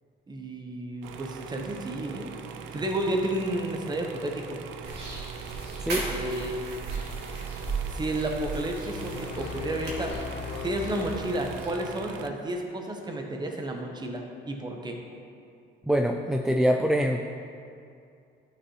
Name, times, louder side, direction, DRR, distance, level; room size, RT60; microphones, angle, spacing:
voice 1, 0.3-2.3 2.7-4.6 6.1-6.6 7.9-10.1 10.6-15.0, right 1 dB, 20° right, 2 dB, 1.0 m, -31 dB
sound 1, 1.0-12.3, right 6 dB, 90° right, 0.5 m, -42 dB
sound 2, 4.8-11.7, right 4 dB, 65° right, 2.2 m, -37 dB
voice 2, 5.8-6.1 15.9-17.3, equal, 5° right, 2 dB, 0.3 m, -24 dB
sound 3, 8.9-12.1, left 7 dB, 85° left, 0.5 m, -39 dB
12.0 x 6.4 x 3.2 m, 2.5 s
cardioid pair, 120°, 19 cm